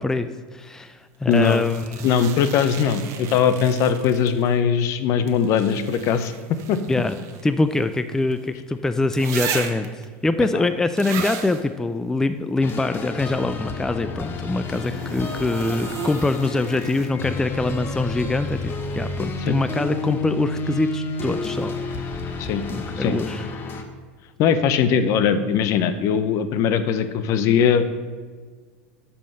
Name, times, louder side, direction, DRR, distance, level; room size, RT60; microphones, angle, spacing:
voice 1, 0.0-2.1 6.9-7.1 7.4-9.9 10.2-21.7 22.7-23.5, left 2 dB, 10° left, 11 dB, 0.4 m, -24 dB
voice 2, 1.3-1.6 2.0-6.3 6.7-6.8 10.5-10.7 19.5-19.6 22.4-22.6 23.0-23.2 24.4-27.9, left 7 dB, 55° left, 11 dB, 0.7 m, -20 dB
sound 1, 1.3-4.5 5.3-8.5 9.1-10.0 11.0-11.6 14.6-17.3 19.2-19.3, right 7 dB, 50° right, 1.0 m, -36 dB
sound 2, 12.6-23.8, left 3 dB, 35° left, 1.0 m, -30 dB
6.8 x 5.6 x 6.3 m, 1.5 s
hypercardioid pair, 95°, 6 cm